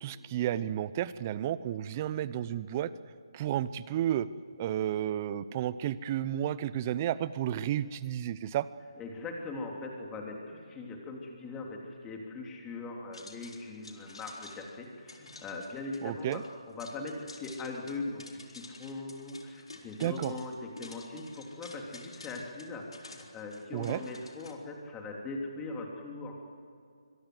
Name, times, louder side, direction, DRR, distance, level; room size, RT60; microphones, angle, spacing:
voice 1, 0.0-2.9 3.3-4.3 4.6-8.7 16.0-16.4 20.0-20.3 23.7-24.0, right 11 dB, 25° right, 17 dB, 0.7 m, -32 dB
voice 2, 9.0-16.4 16.7-26.4, left 3 dB, 10° left, 0 dB, 3.1 m, -40 dB
sound 1, 13.1-24.5, left 3 dB, 80° left, 4.0 m, -51 dB
25.0 x 22.0 x 7.9 m, 2.4 s
figure-of-eight pair, 155°, 3 cm